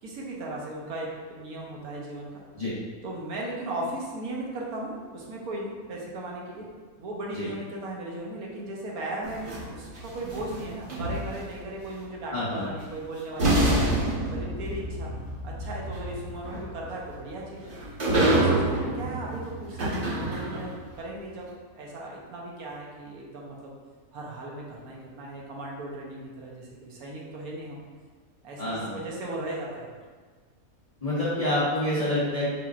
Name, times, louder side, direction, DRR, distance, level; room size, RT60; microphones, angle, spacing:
voice 1, 0.0-2.4 3.0-6.7 7.0-13.7 14.2-15.1 15.4-17.7 18.2-23.7 24.1-27.8 28.4-29.9, right 1 dB, 80° right, -3 dB, 1.3 m, -37 dB
sound 1, 9.2-11.6 12.8-12.9 13.4-20.9, right 1 dB, 40° right, 1.1 m, -27 dB
voice 2, 12.3-12.6 28.6-28.9 31.0-32.5, left 1 dB, 30° left, -9 dB, 0.7 m, -27 dB
4.7 x 3.5 x 2.4 m, 1.5 s
omnidirectional pair, 1.6 m